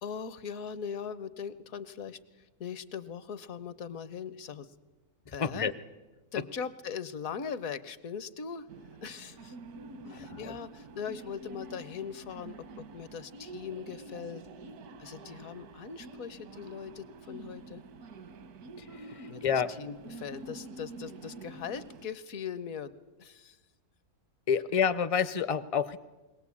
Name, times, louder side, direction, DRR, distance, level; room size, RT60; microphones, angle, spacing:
voice 1, 0.0-4.7 5.3-5.7 6.3-8.7 9.0-9.6 10.1-14.4 15.0-17.8 19.3-22.9 23.2-23.6, left 7 dB, 65° left, 14 dB, 1.3 m, -40 dB
voice 2, 5.3-5.7 10.1-10.6 18.8-19.7 24.5-26.0, left 7 dB, 40° left, 14 dB, 0.5 m, -29 dB
sound 1, 8.7-22.1, right 2 dB, 80° right, 1.5 m, -47 dB
22.0 x 18.0 x 8.4 m, 1.2 s
omnidirectional pair, 1.6 m